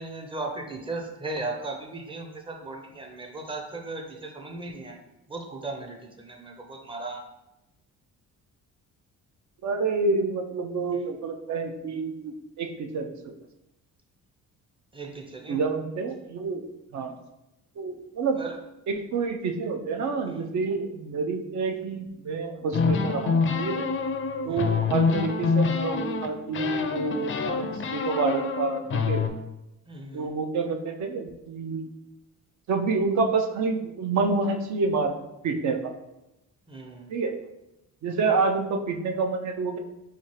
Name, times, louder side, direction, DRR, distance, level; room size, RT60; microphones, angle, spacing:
voice 1, 0.0-5.0 5.3-7.3 14.9-15.6 18.4-18.6 24.4-24.8 29.9-30.3 36.7-37.1, right 2 dB, 15° right, 2 dB, 0.6 m, -37 dB
voice 2, 9.6-13.3 15.5-16.7 16.9-17.1 17.8-18.4 18.9-23.9 24.4-29.2 30.1-31.8 32.7-35.2 35.4-35.9 37.1-37.4 38.0-39.8, right 4 dB, 60° right, 5 dB, 0.5 m, -28 dB
sound 1, 22.7-26.3 26.5-29.3, left 4 dB, 40° left, 0.4 m, -26 dB
4.3 x 2.4 x 3.0 m, 0.92 s
cardioid pair, 100°, 33 cm